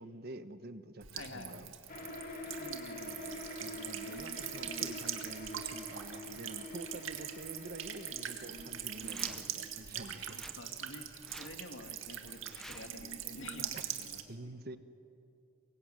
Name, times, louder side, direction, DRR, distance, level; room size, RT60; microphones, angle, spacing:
voice 1, 0.0-1.7 3.6-10.4 13.7-13.9 14.3-14.8, right 2 dB, 50° right, 11 dB, 1.2 m, -48 dB
Buzz / Water tap faucet / Trickle dribble, 1.0-14.2, right 9 dB, 80° right, 2.0 m, -42 dB
voice 2, 1.1-1.8 2.6-3.5 9.9-14.5, left 2 dB, 75° left, 6 dB, 2.3 m, -50 dB
sound 1, 1.9-10.1, left 1 dB, 45° left, 2.9 m, -46 dB
sound 2, 8.9-9.6 10.3-10.6 11.2-11.6 12.4-13.0, equal, ahead, 0.9 m, -52 dB
24.0 x 22.5 x 9.8 m, 2.6 s
head